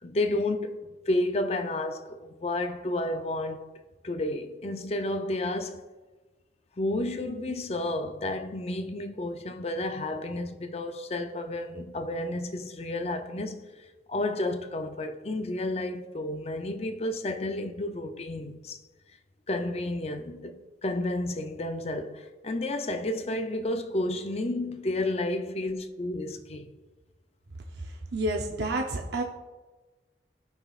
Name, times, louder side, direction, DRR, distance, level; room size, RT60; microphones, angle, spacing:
voice 1, 0.0-3.7 4.0-5.8 6.8-13.6 14.1-18.8 19.5-26.7, left 1 dB, 35° left, 0.5 m, -31 dB
voice 2, 27.8-29.2, right 1 dB, 70° right, 0.8 m, -30 dB
15.5 x 5.9 x 2.4 m
head